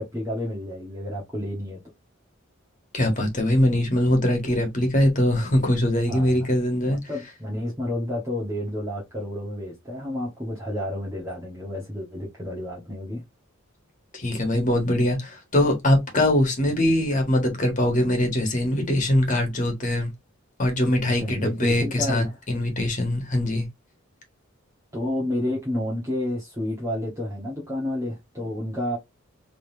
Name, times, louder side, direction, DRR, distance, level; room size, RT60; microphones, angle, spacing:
voice 1, 0.0-1.8 6.1-6.5 6.8-13.2 21.1-22.4 24.9-29.0, left 1 dB, 15° right, 1.3 m, -30 dB
voice 2, 2.9-7.0 14.1-20.1 20.6-23.7, left 1 dB, 40° left, 1.7 m, -22 dB
4.1 x 3.3 x 2.7 m
head